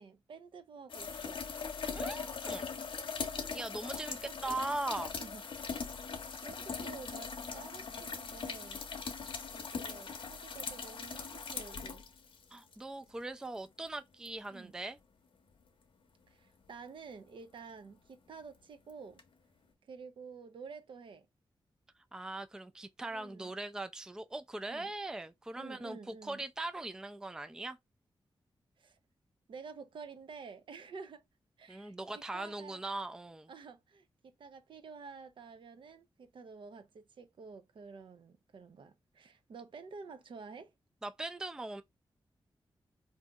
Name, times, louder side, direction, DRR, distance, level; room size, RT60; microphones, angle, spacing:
voice 1, 0.0-1.5 4.1-4.6 5.2-5.4 6.0-8.9 9.5-12.1 14.5-14.7 16.3-19.2 19.8-21.3 23.1-23.5 24.7-24.9 25.6-26.4 28.8-29.0 29.5-31.2 31.6-32.0 32.3-32.8 33.5-40.7, right 5 dB, 70° right, 0.6 m, -50 dB
sound 1, 0.9-12.7 14.3-14.4 19.2-19.3, left 5 dB, 75° left, 0.7 m, -40 dB
voice 2, 1.9-2.7 3.5-4.1 4.4-5.2 12.5-15.0 22.1-27.8 31.7-33.5 41.0-41.8, right 2 dB, 5° right, 0.3 m, -40 dB
3.8 x 2.7 x 2.3 m
wide cardioid pair, 90°, 9 cm